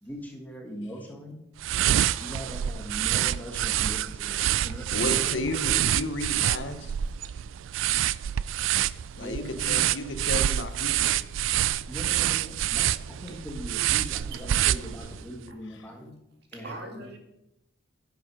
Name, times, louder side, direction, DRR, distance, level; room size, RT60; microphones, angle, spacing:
voice 1, 0.0-1.4 2.2-5.8 9.2-9.9 11.9-16.1 16.5-17.2, equal, 10° left, 1 dB, 1.7 m, -40 dB
sound 1, 1.6-15.3, right 12 dB, 75° right, 0.3 m, -27 dB
voice 2, 4.9-6.9 9.2-11.1, left 2 dB, 65° left, 8 dB, 1.0 m, -33 dB
voice 3, 8.1-9.2 16.5-17.2, right 2 dB, 50° right, 3 dB, 2.0 m, -45 dB
10.5 x 8.2 x 4.9 m, 0.84 s
head